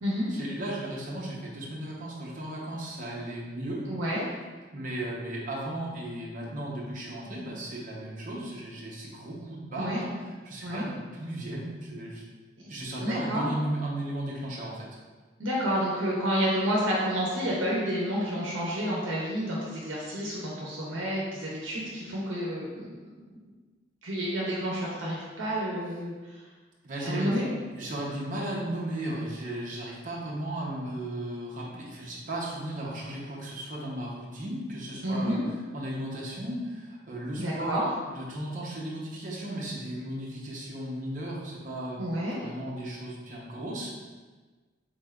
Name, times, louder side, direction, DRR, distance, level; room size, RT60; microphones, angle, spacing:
voice 1, 0.3-3.9 4.7-12.2 12.7-14.9 26.8-35.4 35.7-44.1, right 1 dB, 45° right, -4 dB, 0.7 m, -35 dB
voice 2, 3.9-4.2 9.8-10.0 10.6-10.8 13.0-13.5 15.4-22.9 24.0-26.4 27.0-27.5 35.0-35.4 37.4-37.9 42.0-42.4, equal, 90° right, -5 dB, 0.7 m, -29 dB
4.1 x 3.2 x 2.3 m, 1.3 s
head